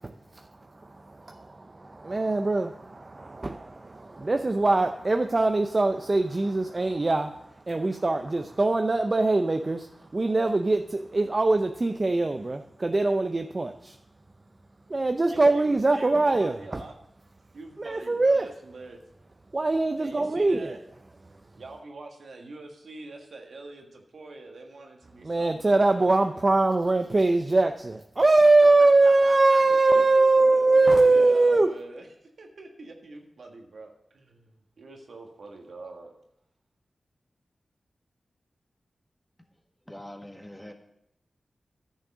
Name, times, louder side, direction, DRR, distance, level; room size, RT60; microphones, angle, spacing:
voice 1, 0.0-14.0 14.9-16.8 17.8-18.5 19.5-20.8 25.2-31.7, right 2 dB, 45° right, 6 dB, 0.6 m, -23 dB
voice 2, 15.3-16.9 17.5-19.0 20.0-20.8 21.6-26.4 28.4-28.5 28.8-30.3 30.5-32.1 32.4-36.1, right 3 dB, 80° right, 2 dB, 1.5 m, -45 dB
voice 3, 39.9-40.7, left 1 dB, 15° left, 3 dB, 1.7 m, -43 dB
10.5 x 6.5 x 6.1 m, 0.80 s
cardioid pair, 40°, 0 cm